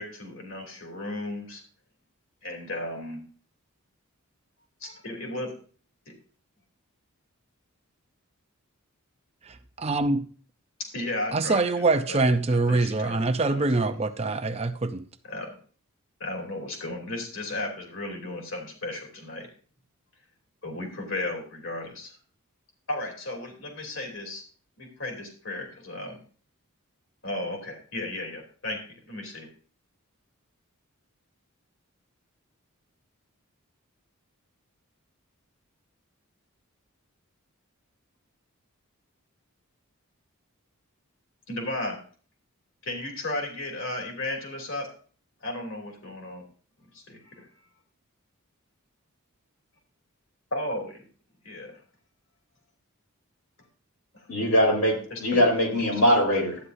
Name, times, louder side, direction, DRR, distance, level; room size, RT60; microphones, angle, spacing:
voice 1, 0.0-1.6 2.4-3.2 4.8-5.5 6.1-6.2 10.9-14.0 15.2-15.6 16.2-19.5 20.6-22.1 22.9-24.4 24.8-26.2 27.2-28.8 29.1-29.5 41.5-42.0 42.8-44.9 45.4-46.4 46.9-47.5 50.5-51.0 51.4-51.8 54.1-54.3 55.1-55.5 55.9-56.0, left 1 dB, 60° left, 3.0 m, -35 dB
voice 2, 9.8-10.2 11.3-15.0, right 3 dB, 30° right, 0.5 m, -24 dB
voice 3, 54.3-56.6, equal, 85° left, 4.4 m, -22 dB
12.5 x 9.8 x 2.6 m
head